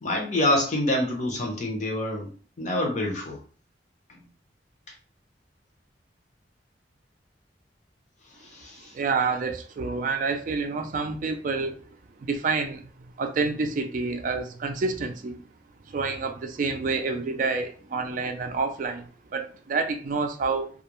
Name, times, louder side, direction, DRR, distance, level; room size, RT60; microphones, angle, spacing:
voice 1, 0.0-2.3 2.6-3.4 8.4-8.9, left 1 dB, 40° left, 0.7 m, -26 dB
voice 2, 8.9-11.8 12.2-12.9 13.2-15.4 15.9-20.7, right 4 dB, 45° right, 0.3 m, -28 dB
2.3 x 2.1 x 2.9 m
head